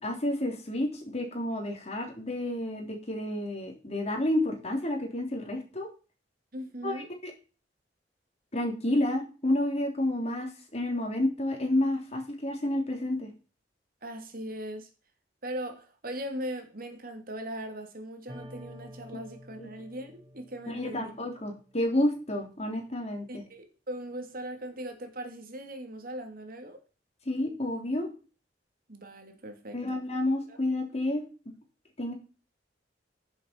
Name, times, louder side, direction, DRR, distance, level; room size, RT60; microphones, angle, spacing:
voice 1, 0.0-5.9 6.8-7.3 8.5-13.3 19.6-19.7 20.7-23.4 27.3-28.1 29.7-31.5 32.0-32.1, left 1 dB, 35° left, 3.5 m, -30 dB
voice 2, 6.5-7.1 14.0-14.9 15.4-21.1 23.3-26.8 28.9-30.0 30.5-30.6, right 1 dB, 55° right, 2.8 m, -39 dB
sound 1, 18.3-21.7, equal, 25° right, 1.6 m, -49 dB
10.5 x 7.2 x 6.0 m
head